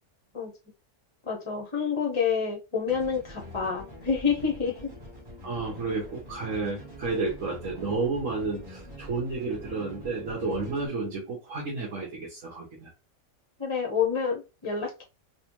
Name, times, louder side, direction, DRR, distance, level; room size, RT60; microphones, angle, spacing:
voice 1, 1.3-4.9 13.6-15.0, left 6 dB, 30° left, 1 dB, 0.6 m, -28 dB
sound 1, 2.9-10.9, equal, 20° right, 1.0 m, -45 dB
voice 2, 5.4-12.9, right 3 dB, 65° right, -3 dB, 1.5 m, -31 dB
4.1 x 2.2 x 3.0 m, 0.27 s
omnidirectional pair, 1.5 m